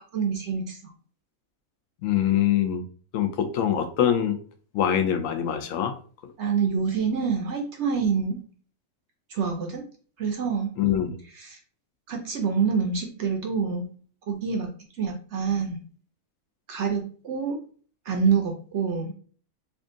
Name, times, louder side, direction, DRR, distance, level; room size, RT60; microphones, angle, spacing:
voice 1, 0.1-0.8 6.4-8.4 9.3-9.8 10.2-10.7 11.4-11.6 12.1-13.9 14.3-14.7 15.0-15.8 16.7-17.6 18.1-19.1, right 6 dB, 60° right, 3 dB, 0.8 m, -26 dB
voice 2, 2.0-2.9 3.1-4.4 4.7-6.0 6.2-6.3 10.8-11.2, left 10 dB, 65° left, 7 dB, 0.9 m, -24 dB
3.5 x 2.5 x 3.7 m, 0.42 s
omnidirectional pair, 1.6 m